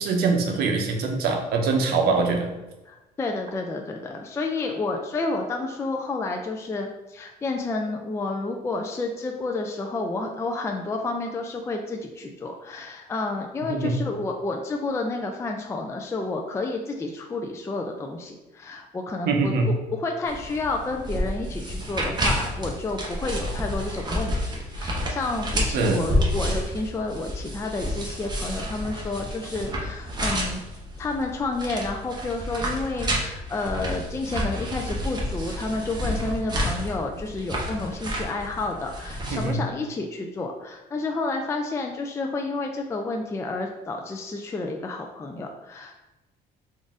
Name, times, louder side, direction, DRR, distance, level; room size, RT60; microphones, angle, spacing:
voice 1, 0.0-2.5 13.6-14.0 19.3-19.7 25.7-26.0 39.3-39.6, right 4 dB, 70° right, 3 dB, 0.7 m, -23 dB
voice 2, 2.9-19.5 19.9-30.6 31.0-46.0, left 3 dB, 15° left, 3 dB, 0.3 m, -30 dB
sound 1, 20.3-39.5, equal, 25° right, 0.8 m, -30 dB
3.9 x 2.5 x 3.6 m, 1.0 s
cardioid pair, 110°, 17 cm